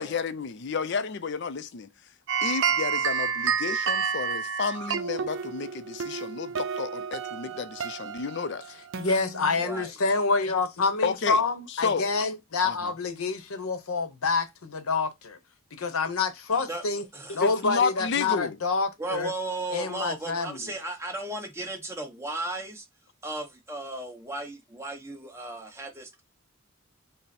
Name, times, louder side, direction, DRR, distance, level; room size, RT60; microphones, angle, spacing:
voice 1, 0.0-1.9 2.4-8.6 11.0-11.4 11.7-12.1 12.6-12.9 17.4-18.6, left 5 dB, 55° left, 0.4 m, -31 dB
sound 1, 2.3-9.8, right 6 dB, 60° right, 0.5 m, -30 dB
voice 2, 9.0-15.4 15.7-17.0 17.3-19.3 19.7-20.6, left 4 dB, 85° left, 0.8 m, -27 dB
voice 3, 9.6-9.9 16.7-16.8 17.1-17.4 19.0-22.9 23.2-26.2, right 2 dB, 15° right, 0.9 m, -35 dB
5.4 x 2.1 x 4.1 m
head